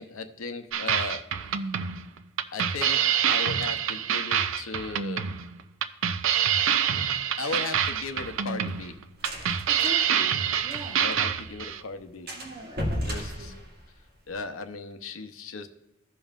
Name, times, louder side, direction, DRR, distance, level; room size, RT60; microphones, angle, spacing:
voice 1, 0.0-1.6 2.5-5.2 7.4-9.0 9.4-9.6 11.0-12.3 13.0-13.5 14.3-15.7, left 4 dB, 75° left, 8 dB, 0.7 m, -37 dB
sound 1, 0.7-11.8, right 8 dB, 70° right, 0.5 m, -26 dB
sound 2, 7.8-11.2 11.5-11.6 11.8-12.0 12.3-14.3, equal, 50° right, 1.8 m, -35 dB
voice 2, 9.7-11.0 12.3-13.6, right 1 dB, 25° right, 1 dB, 1.1 m, -42 dB
16.0 x 5.4 x 2.4 m, 0.95 s
head